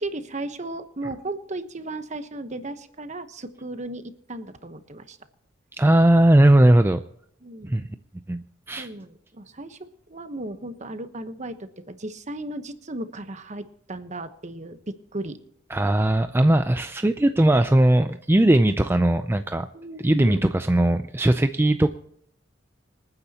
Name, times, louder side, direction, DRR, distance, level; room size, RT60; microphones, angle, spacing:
voice 1, 0.0-5.2 7.4-7.8 8.8-9.8 10.1-15.4 19.7-20.4, right 2 dB, 40° right, 10 dB, 1.1 m, -35 dB
voice 2, 5.8-7.0 7.6-7.9 8.3-8.9 15.7-19.7 20.0-22.0, right 1 dB, 10° right, 8 dB, 0.4 m, -19 dB
26.5 x 9.8 x 2.9 m, 0.71 s
head